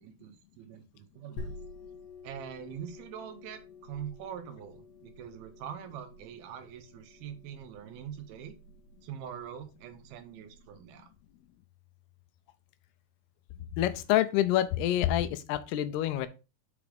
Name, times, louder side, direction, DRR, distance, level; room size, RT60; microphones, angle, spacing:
voice 1, 0.0-1.5 2.2-8.6 9.0-11.1, right 9 dB, 75° right, 7 dB, 2.5 m, -43 dB
sound 1, 1.4-10.7, left 2 dB, 50° left, 2.9 m, -49 dB
voice 2, 13.8-16.3, left 12 dB, 80° left, 11 dB, 2.5 m, -27 dB
5.9 x 5.2 x 4.9 m, 0.30 s
omnidirectional pair, 4.7 m